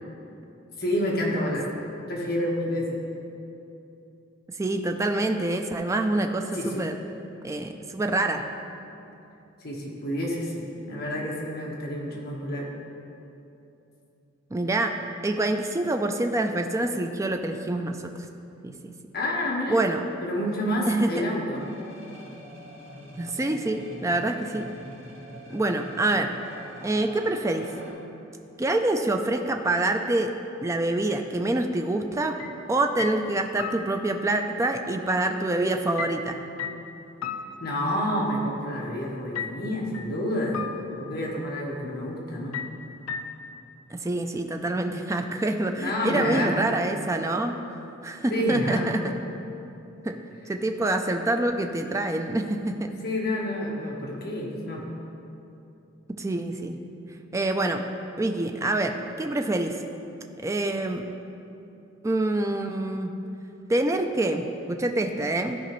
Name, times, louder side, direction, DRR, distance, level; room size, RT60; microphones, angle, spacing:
voice 1, 0.8-1.6 2.1-2.9 6.5-6.7 9.6-12.6 19.1-19.8 20.2-21.6 37.6-40.6 41.0-42.6 45.8-46.5 48.3-48.8 53.0-54.8, equal, 50° left, -3 dB, 1.3 m, -28 dB
voice 2, 4.6-7.0 7.4-8.4 14.5-14.9 15.2-18.1 18.6-18.9 19.7-20.0 20.9-21.2 23.2-24.7 25.5-26.3 26.8-27.7 28.6-30.3 30.6-32.3 32.7-36.4 43.9-47.6 48.0-49.0 50.0-50.1 50.5-52.9 56.1-56.8 57.3-57.8 58.2-59.8 60.4-61.1 62.0-63.1 63.7-65.6, right 2 dB, 15° right, 4 dB, 0.3 m, -26 dB
sound 1, 21.5-27.9, equal, 60° right, 1.9 m, -44 dB
sound 2, 32.4-32.6 33.0-34.4 36.0-38.3 39.3-40.2 40.5-41.4 42.5-43.6, left 7 dB, 90° left, 0.4 m, -36 dB
14.0 x 4.9 x 3.1 m, 2.8 s
head